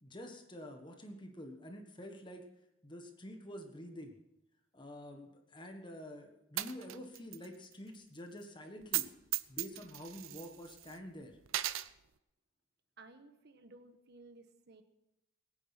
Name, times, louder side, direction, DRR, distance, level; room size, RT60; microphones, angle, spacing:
voice 1, 0.0-2.4 2.8-4.2 4.7-9.1 9.5-11.4, equal, 25° left, 4 dB, 1.4 m, -48 dB
Coin (dropping), 6.6-7.5 7.7-7.8 8.8-9.1 9.3-10.9 11.5-11.9, right 14 dB, 80° right, 0.6 m, -36 dB
voice 2, 13.0-14.8, right 2 dB, 55° right, 8 dB, 1.4 m, -57 dB
21.5 x 9.2 x 5.9 m, 0.88 s
head